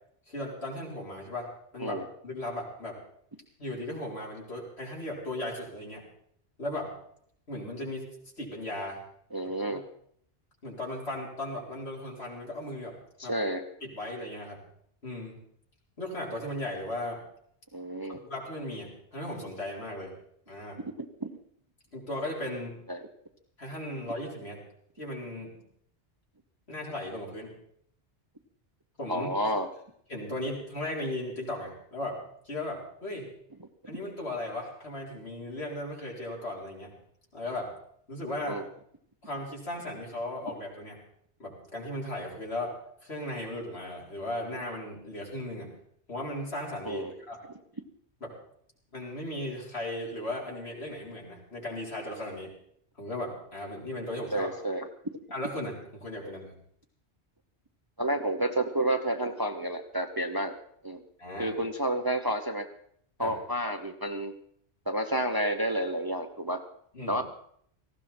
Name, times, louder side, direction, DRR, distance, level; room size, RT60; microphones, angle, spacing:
voice 1, 0.3-2.0 2.2-3.0 3.6-6.1 6.6-6.9 7.5-9.0 9.7-9.8 10.6-13.3 13.8-14.6 15.0-15.4 16.0-17.2 18.1-20.1 20.5-20.8 21.9-22.8 23.6-24.6 25.0-25.6 26.7-27.6 29.0-29.3 30.1-32.2 32.4-33.3 33.9-36.9 37.3-37.7 38.1-38.6 39.2-41.0 41.4-42.7 43.0-45.7 46.1-47.4 48.2-48.3 48.9-52.5 53.0-54.5 55.3-56.6 61.2-61.5 63.2-63.3 66.9-67.2, left 1 dB, 65° left, -3 dB, 4.8 m, -36 dB
voice 2, 9.3-9.8 13.3-13.6 17.7-18.2 21.2-21.3 22.9-23.0 29.1-29.7 38.5-38.6 46.8-47.1 54.3-54.9 58.0-60.6 60.8-61.0 61.4-62.7 63.2-64.4 64.9-66.6 67.1-67.2, right 1 dB, 20° right, 6 dB, 0.8 m, -30 dB
18.5 x 15.5 x 4.4 m, 0.65 s
omnidirectional pair, 1.1 m